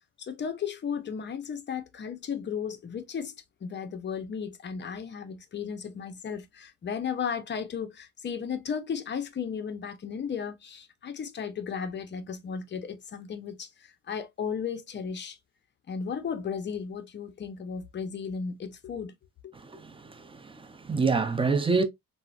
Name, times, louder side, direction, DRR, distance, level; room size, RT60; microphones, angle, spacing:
voice 1, 0.2-15.4 15.9-19.1 19.4-19.5, left 6 dB, 35° left, 0.6 m, -35 dB
voice 2, 19.6-21.8, right 4 dB, 20° right, 0.5 m, -27 dB
3.4 x 2.1 x 2.4 m
cardioid pair, 90°, 30 cm